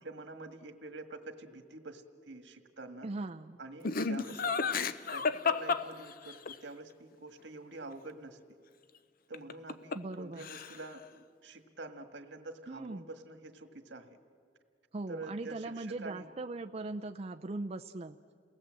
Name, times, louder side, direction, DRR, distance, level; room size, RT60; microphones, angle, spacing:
voice 1, 0.0-3.1 3.6-8.4 9.3-14.2 15.1-16.3, right 2 dB, 80° right, 6 dB, 1.7 m, -47 dB
voice 2, 3.0-3.6 9.9-10.4 12.7-13.0 14.9-18.2, right 2 dB, 35° right, 5 dB, 0.5 m, -39 dB
Laughter, 3.8-6.5 9.3-10.1 10.4-11.0, left 5 dB, 50° left, 0.7 m, -32 dB
29.0 x 19.0 x 7.7 m, 2.2 s
head